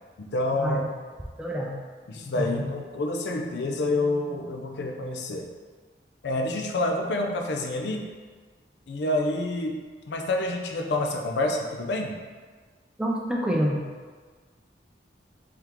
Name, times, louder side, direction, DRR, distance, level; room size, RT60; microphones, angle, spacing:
voice 1, 0.2-0.8 2.1-5.5 6.2-8.1 8.9-9.8 10.1-12.2, left 2 dB, 70° left, 3 dB, 0.4 m, -28 dB
voice 2, 1.4-1.7 2.4-2.7 13.0-13.8, equal, 5° right, -2 dB, 0.3 m, -27 dB
3.5 x 3.5 x 3.0 m, 1.5 s
head